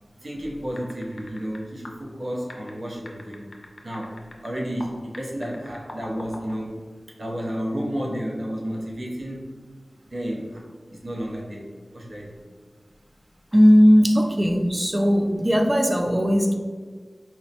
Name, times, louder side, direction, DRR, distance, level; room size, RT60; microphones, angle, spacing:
voice 1, 0.2-3.5 3.8-6.8 7.2-9.5 10.1-10.6 10.9-12.4, equal, 75° right, -3 dB, 0.6 m, -32 dB
sound 1, 0.8-1.6 1.8-1.9 2.5-4.9 5.1-6.5, left 2 dB, 60° left, 0.4 m, -42 dB
voice 2, 13.5-16.6, equal, 25° right, 3 dB, 0.3 m, -17 dB
4.2 x 2.0 x 2.8 m, 1.5 s
wide cardioid pair, 50°, 0 cm